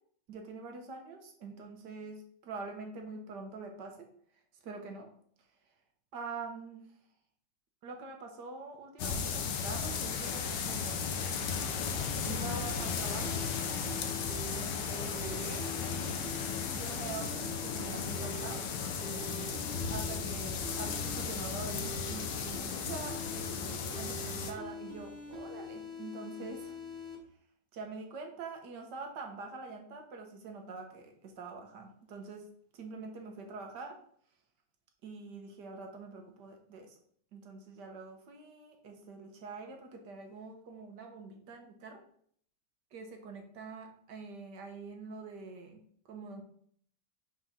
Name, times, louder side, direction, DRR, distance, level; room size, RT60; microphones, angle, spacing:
voice 1, 0.3-4.1 4.6-5.1 6.1-7.0 7.8-11.3 12.2-13.4 14.5-26.8 27.7-32.4 32.7-34.0 35.0-37.0 37.3-42.0 42.9-46.4, right 4 dB, 75° right, 3 dB, 1.7 m, -45 dB
sound 1, 9.0-24.5, left 6 dB, 85° left, 1.5 m, -35 dB
sound 2, 12.2-27.2, equal, 40° right, 1.4 m, -45 dB
5.1 x 3.8 x 5.7 m, 0.62 s
omnidirectional pair, 1.9 m